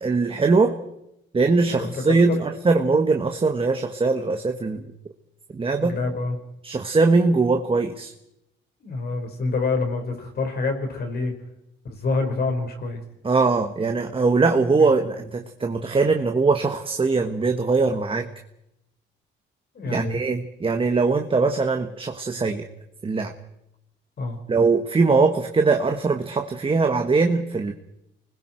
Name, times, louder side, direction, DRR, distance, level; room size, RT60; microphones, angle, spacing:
voice 1, 0.0-0.7 1.3-4.8 5.5-6.0 6.6-8.1 13.2-18.3 19.8-22.6 23.0-23.3 24.5-27.7, right 4 dB, 25° right, 5 dB, 1.5 m, -21 dB
voice 2, 1.7-2.4 5.8-6.4 8.8-11.3 11.9-13.0 14.8-14.9 19.8-20.2 24.2-24.4, left 3 dB, 55° left, 4 dB, 5.1 m, -27 dB
29.0 x 20.5 x 4.6 m, 0.85 s
cardioid pair, 90°, 20 cm